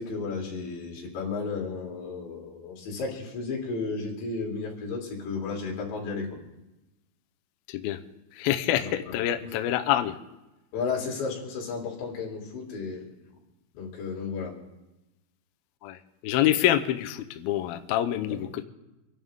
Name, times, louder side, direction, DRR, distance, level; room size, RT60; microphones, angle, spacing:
voice 1, 0.0-6.3 8.8-8.9 10.7-13.1 13.8-14.5 18.1-18.4, left 4 dB, 70° left, -2 dB, 5.3 m, -33 dB
voice 2, 7.7-8.0 8.4-10.2 15.8-18.6, left 12 dB, 90° left, 8 dB, 2.1 m, -26 dB
27.0 x 11.0 x 3.6 m, 0.99 s
omnidirectional pair, 5.3 m